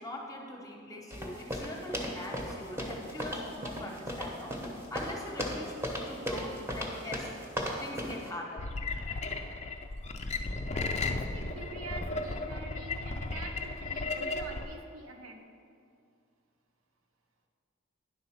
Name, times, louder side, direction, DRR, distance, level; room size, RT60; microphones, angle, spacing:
voice 1, 0.0-5.7 6.1-7.3 7.8-8.8, left 1 dB, 15° left, 0 dB, 0.9 m, -42 dB
sound 1, 1.1-8.3, equal, 10° right, 0.9 m, -36 dB
sound 2, 8.6-14.6, left 3 dB, 30° left, 0.4 m, -35 dB
voice 2, 10.7-15.4, right 2 dB, 90° right, 2 dB, 0.9 m, -45 dB
10.0 x 4.0 x 5.7 m, 2.4 s
head